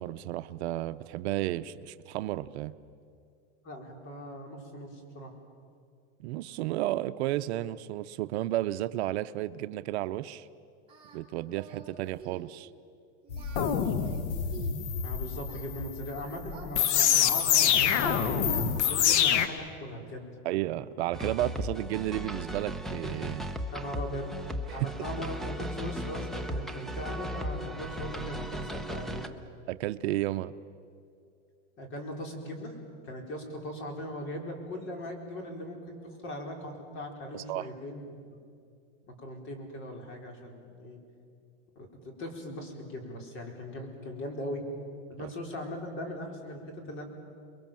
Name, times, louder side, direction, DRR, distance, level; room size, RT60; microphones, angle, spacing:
voice 1, 0.0-2.7 6.2-10.5 11.1-12.7 20.4-23.5 24.7-24.8 29.7-30.5 37.3-37.7 45.2-45.3, right 15 dB, 65° right, 12 dB, 0.7 m, -32 dB
voice 2, 3.6-5.3 15.0-20.3 23.7-24.3 24.7-29.4 31.8-32.7 33.0-38.4 39.2-41.0 41.8-44.6 45.1-47.0, equal, 35° left, 2 dB, 4.6 m, -39 dB
Singing, 10.9-11.2 11.5-11.9 12.2-12.5 13.2-14.8 15.5-17.2 17.5-18.7, right 7 dB, 15° right, 5.1 m, -47 dB
sound 1, 13.3-19.5, left 9 dB, 70° left, 1.5 m, -26 dB
sound 2, 21.1-29.3, equal, ahead, 0.8 m, -36 dB
29.0 x 22.5 x 7.5 m, 2.3 s
supercardioid pair, 150°, 35 cm